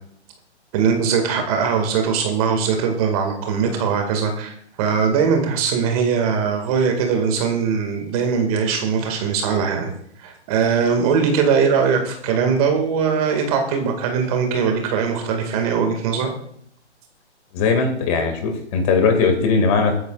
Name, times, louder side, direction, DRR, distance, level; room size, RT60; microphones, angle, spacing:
voice 1, 0.7-4.5 4.8-9.9 10.2-16.3, right 6 dB, 30° right, 4 dB, 2.1 m, -20 dB
voice 2, 17.5-19.9, left 4 dB, 30° left, 5 dB, 2.2 m, -19 dB
22.0 x 9.3 x 2.5 m, 0.67 s
figure-of-eight pair, 135°, 35 cm